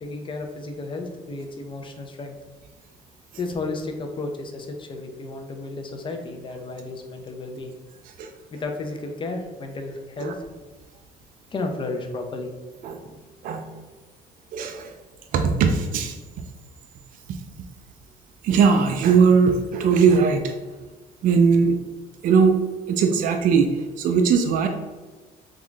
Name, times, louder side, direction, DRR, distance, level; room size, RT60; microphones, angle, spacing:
voice 1, 0.0-2.4 3.4-7.7 8.5-10.4 11.5-12.5, left 3 dB, 30° left, 4 dB, 0.5 m, -33 dB
voice 2, 12.8-13.1 13.4-13.7 14.5-14.9 15.3-16.2 17.3-17.4 18.4-20.6 21.2-21.8 22.2-22.6 22.9-24.7, right 5 dB, 55° right, 5 dB, 0.4 m, -19 dB
3.6 x 2.4 x 3.1 m, 1.3 s
cardioid pair, 110°, 17 cm